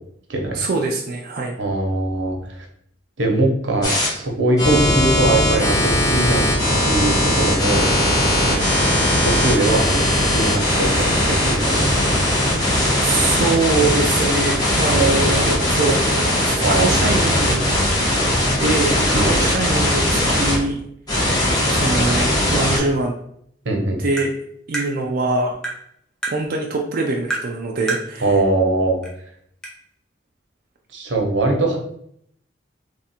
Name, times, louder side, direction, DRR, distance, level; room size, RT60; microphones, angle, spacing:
voice 1, 0.5-1.6 8.5-8.6 13.0-17.8 18.6-20.8 21.7-23.2 24.0-24.3 24.7-25.6 26.3-28.3, right 3 dB, 55° right, 0 dB, 0.4 m, -23 dB
voice 2, 1.6-2.7 3.2-6.5 6.8-7.9 9.2-12.2 12.8-13.0 14.9-15.5 16.6-17.5 19.1-19.5 23.6-24.0 28.2-29.0 30.9-31.8, right 2 dB, 85° right, 2 dB, 0.9 m, -21 dB
sound 1, 3.8-4.1 4.6-20.6 21.1-22.8, left 1 dB, 20° left, 1.2 m, -19 dB
Tap, 24.2-24.3 24.7-24.9 25.6-25.8 26.2-26.4 27.3-27.5 27.9-28.1 29.0-29.1 29.6-29.7, right 2 dB, 5° left, 0.8 m, -26 dB
3.3 x 2.5 x 4.2 m, 0.70 s
head